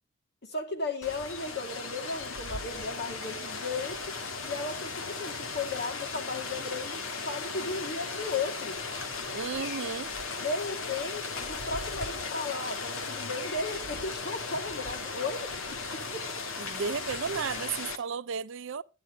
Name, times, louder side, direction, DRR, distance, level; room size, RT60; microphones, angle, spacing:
voice 1, 0.4-4.2 4.4-8.8 10.4-16.3, left 3 dB, 55° left, 2.2 m, -35 dB
Rain, 1.0-18.0, left 4 dB, 85° left, 1.5 m, -36 dB
voice 2, 9.3-10.1 16.6-18.8, right 6 dB, 65° right, 0.5 m, -34 dB
10.5 x 10.5 x 3.9 m
head